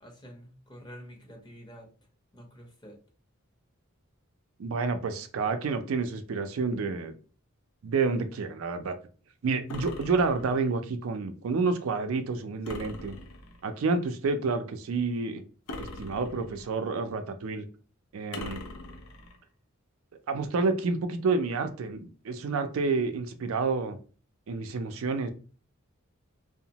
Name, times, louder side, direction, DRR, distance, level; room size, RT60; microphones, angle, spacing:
voice 1, 0.0-1.9 2.3-3.0, equal, 20° left, 1 dB, 0.7 m, -48 dB
voice 2, 4.6-7.1 7.8-9.0 9.4-13.2 13.6-15.4 15.8-17.7 18.1-18.6 20.3-24.0 24.5-25.3, right 4 dB, 80° right, 7 dB, 0.4 m, -29 dB
sound 1, 9.7-10.8 12.7-13.7 15.7-16.8 18.3-19.4, left 2 dB, 80° left, 0.5 m, -42 dB
2.8 x 2.0 x 2.8 m, 0.38 s
head